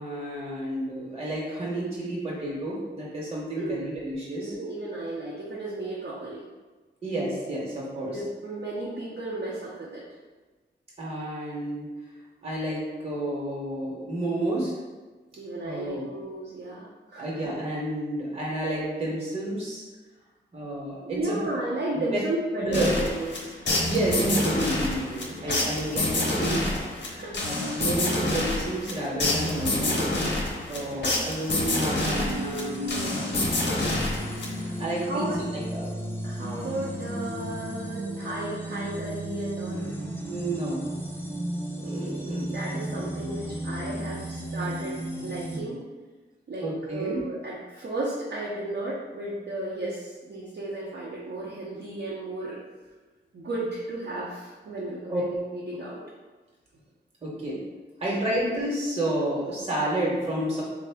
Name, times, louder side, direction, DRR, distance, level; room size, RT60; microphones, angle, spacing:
voice 1, 0.0-4.5 7.0-8.2 11.0-11.9 12.4-14.8 15.6-16.0 17.2-19.8 20.5-21.4 22.6-22.9 23.8-30.1 30.7-33.2 34.8-36.0 40.3-40.8 41.8-42.5 46.6-47.2 55.1-55.2 57.2-57.6 58.0-60.6, right 1 dB, 30° right, -5 dB, 0.9 m, -30 dB
voice 2, 3.5-4.0 4.4-6.5 8.0-10.0 15.4-17.4 21.0-23.5 25.5-25.7 27.2-27.8 30.1-30.6 35.1-35.4 36.2-39.9 41.8-42.2 42.5-45.8 46.5-52.6 53.3-56.0, right 1 dB, 70° right, -6 dB, 0.6 m, -34 dB
sound 1, 22.7-34.9, left 2 dB, 70° left, 0.7 m, -28 dB
sound 2, 31.6-45.6, right 1 dB, 10° left, 0.4 m, -34 dB
3.5 x 2.1 x 3.3 m, 1.3 s
wide cardioid pair, 100°, 19 cm